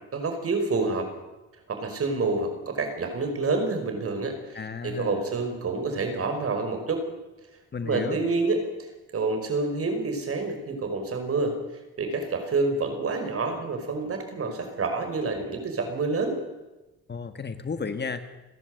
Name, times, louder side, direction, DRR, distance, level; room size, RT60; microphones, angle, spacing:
voice 1, 0.1-1.1 1.7-4.6 4.8-7.1 7.8-11.6 12.0-16.4, right 3 dB, 50° right, 6 dB, 5.5 m, -28 dB
voice 2, 4.5-5.3 7.7-8.2 17.1-18.3, left 5 dB, 35° left, 9 dB, 1.7 m, -33 dB
30.0 x 11.0 x 8.1 m, 1.1 s
cardioid pair, 90°, 30 cm